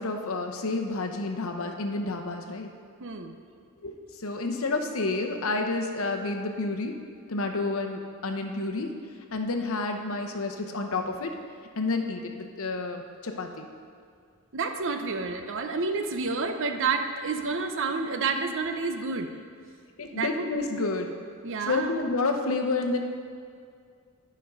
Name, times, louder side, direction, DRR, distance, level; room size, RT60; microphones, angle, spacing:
voice 1, 0.0-2.7 3.8-3.9 4.2-7.0 7.3-8.9 9.3-11.3 11.8-13.7 20.0-21.1 21.6-23.0, left 3 dB, 65° left, 4 dB, 0.8 m, -29 dB
voice 2, 3.0-3.3 14.5-19.3 20.1-20.5 21.4-21.9, right 4 dB, 60° right, 6 dB, 0.6 m, -29 dB
10.5 x 5.2 x 5.3 m, 2.2 s
head